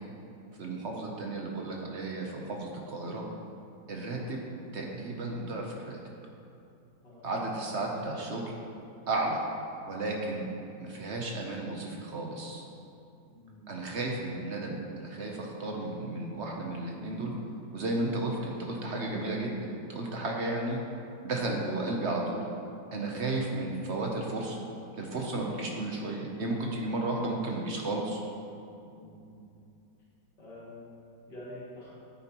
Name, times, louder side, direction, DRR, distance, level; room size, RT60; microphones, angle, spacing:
voice 1, 0.6-3.3 3.9-4.4 4.7-6.0 7.2-8.5 9.1-9.4 9.9-10.5 10.8-12.6 13.7-17.3 17.7-20.8 21.2-22.4 22.9-24.6 25.0-28.2, right 2 dB, 55° right, 0 dB, 0.8 m, -33 dB
voice 2, 13.3-13.8 28.8-29.4 30.4-31.9, left 1 dB, 70° left, -8 dB, 2.9 m, -48 dB
9.8 x 8.8 x 3.0 m, 2.6 s
omnidirectional pair, 1.9 m